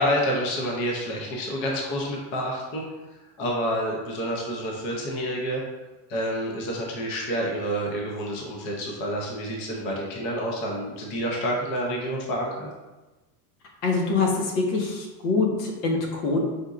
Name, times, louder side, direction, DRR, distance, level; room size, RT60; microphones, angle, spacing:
voice 1, 0.0-2.8 3.4-5.6 6.1-12.7, equal, 25° left, -1 dB, 0.3 m, -28 dB
voice 2, 13.8-16.4, left 3 dB, 90° left, 0 dB, 1.2 m, -24 dB
5.0 x 3.7 x 2.3 m, 1.1 s
supercardioid pair, 175°, 46 cm